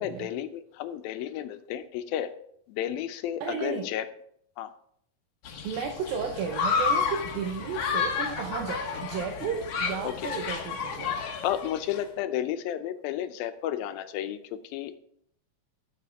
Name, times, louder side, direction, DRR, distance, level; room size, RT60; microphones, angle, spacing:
voice 1, 0.0-2.3 2.7-4.1 4.6-4.7 10.0-10.3 11.4-15.0, left 11 dB, 85° left, 10 dB, 2.5 m, -32 dB
voice 2, 3.4-3.9 5.6-11.2, right 6 dB, 85° right, 2 dB, 2.7 m, -33 dB
Human group actions, 5.4-12.0, left 5 dB, 60° left, 1.6 m, -31 dB
12.5 x 7.6 x 3.5 m, 0.68 s
omnidirectional pair, 4.1 m